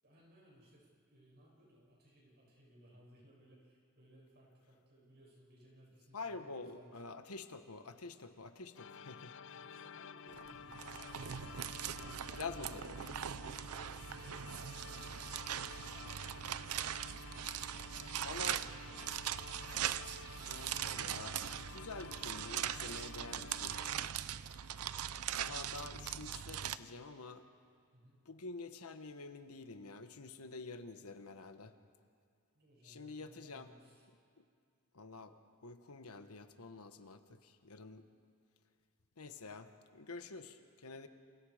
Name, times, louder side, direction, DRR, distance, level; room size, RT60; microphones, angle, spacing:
voice 1, 0.0-7.1 9.5-11.4 12.0-13.2 13.5-15.8 17.6-19.3 27.9-28.2 32.5-34.1, right 1 dB, 50° right, -3 dB, 7.4 m, -63 dB
voice 2, 6.1-9.3 12.3-13.0 18.2-18.6 20.5-23.8 25.3-27.4 28.3-31.7 32.8-33.7 34.9-35.3 35.6-38.0 39.2-41.1, left 3 dB, 80° left, 9 dB, 1.3 m, -48 dB
sound 1, 8.8-24.1, left 6 dB, 60° left, 0.5 m, -52 dB
sound 2, 10.3-26.8, right 10 dB, 80° right, 0.6 m, -41 dB
29.5 x 28.0 x 5.1 m, 2.2 s
head